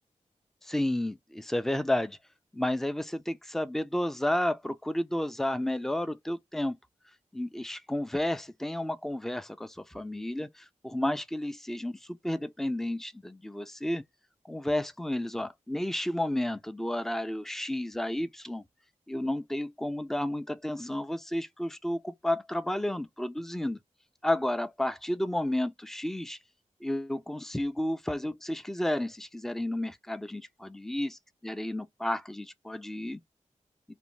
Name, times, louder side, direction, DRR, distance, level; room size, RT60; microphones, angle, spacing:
voice 1, 0.6-2.2 2.5-6.8 7.3-12.0 12.2-14.0 14.5-18.6 19.1-23.8 24.2-26.4 26.8-33.2, left 1 dB, 5° left, 0.3 m, -32 dB
2.5 x 2.1 x 3.0 m
wide cardioid pair, 80°, 13 cm